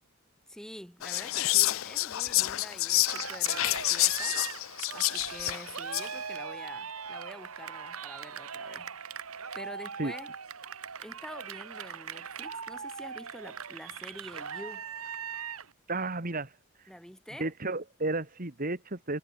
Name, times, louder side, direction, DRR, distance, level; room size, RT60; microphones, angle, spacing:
voice 1, 0.5-4.4 4.9-9.2 9.5-10.3 11.0-14.8 16.9-17.5, equal, 5° left, 2.7 m, -47 dB
Whispering, 1.0-6.2, left 17 dB, 65° left, 0.4 m, -28 dB
Cheering, 3.1-15.7, right 7 dB, 75° right, 1.7 m, -40 dB
voice 2, 15.9-16.5 17.4-19.2, right 2 dB, 40° right, 1.9 m, -32 dB
head